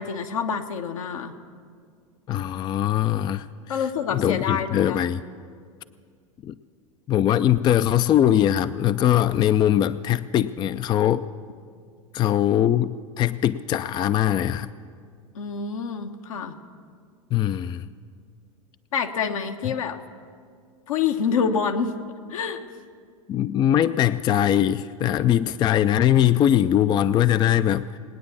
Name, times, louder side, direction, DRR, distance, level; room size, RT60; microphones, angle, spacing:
voice 1, 0.0-1.4 3.7-5.1 15.3-16.6 18.9-20.0 20.9-22.0 22.3-22.6, left 6 dB, 70° left, 5 dB, 1.1 m, -27 dB
voice 2, 2.3-3.5 3.8-5.2 6.4-6.5 7.1-11.3 12.1-14.7 17.3-17.9 19.7-19.8 23.3-27.9, left 11 dB, 25° left, 13 dB, 0.3 m, -21 dB
19.5 x 9.4 x 7.1 m, 2.1 s
hypercardioid pair, 85°, 18 cm